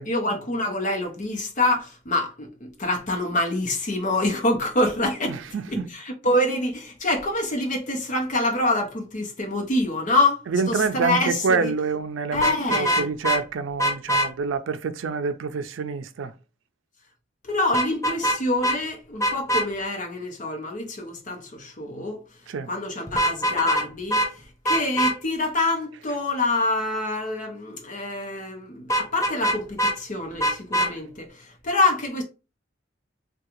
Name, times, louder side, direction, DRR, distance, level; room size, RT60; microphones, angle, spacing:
voice 1, 0.1-5.4 5.7-11.7 12.3-13.1 17.4-22.2 22.7-32.2, left 2 dB, 40° left, 0.8 m, -26 dB
voice 2, 5.3-5.9 10.5-16.3 22.5-22.7, right 5 dB, 85° right, 0.4 m, -27 dB
Vehicle horn car horn honking, 12.3-13.4 13.8-14.3 17.7-18.4 18.6-18.8 19.2-19.6 23.1-23.8 24.1-24.3 24.6-25.1 28.9-29.9 30.4-30.9, equal, 15° left, 0.5 m, -22 dB
3.5 x 2.3 x 2.9 m
head